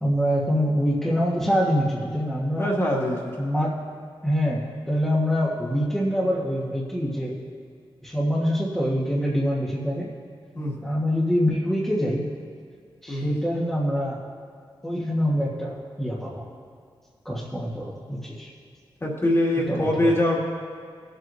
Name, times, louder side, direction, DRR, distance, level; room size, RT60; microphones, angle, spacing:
voice 1, 0.0-2.7 3.4-3.8 4.2-7.4 8.0-10.1 10.8-12.3 13.0-14.2 14.8-16.5 17.2-18.5 19.7-20.1, equal, 5° left, -7 dB, 1.6 m, -25 dB
voice 2, 2.6-3.2 10.5-10.8 13.1-13.4 19.0-20.4, left 1 dB, 30° left, -4 dB, 2.2 m, -23 dB
18.5 x 7.9 x 2.7 m, 2.1 s
wide cardioid pair, 100°, 9 cm